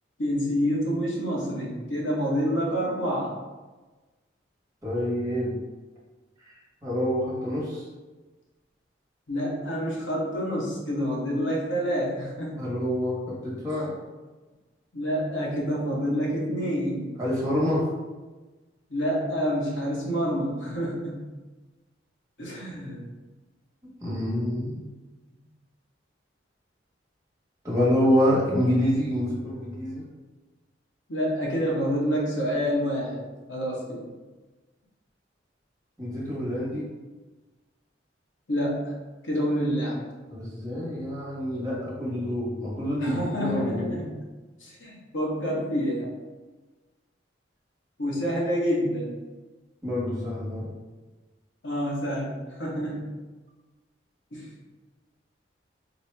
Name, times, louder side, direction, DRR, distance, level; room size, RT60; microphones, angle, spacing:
voice 1, 0.2-3.3 9.3-12.6 14.9-17.1 18.9-21.3 22.4-23.0 31.1-33.2 33.5-34.0 38.5-38.9 39.2-40.0 43.0-44.2 44.6-46.1 48.0-49.1 51.6-53.1 54.3-54.5, equal, 80° left, -3 dB, 1.0 m, -28 dB
voice 2, 4.8-5.6 6.4-7.9 12.6-13.1 13.4-13.9 17.2-17.9 24.0-24.9 27.6-30.0 36.0-36.9 40.3-44.0 49.8-50.7, equal, 20° right, -6 dB, 1.0 m, -27 dB
4.2 x 2.1 x 3.3 m, 1.2 s
head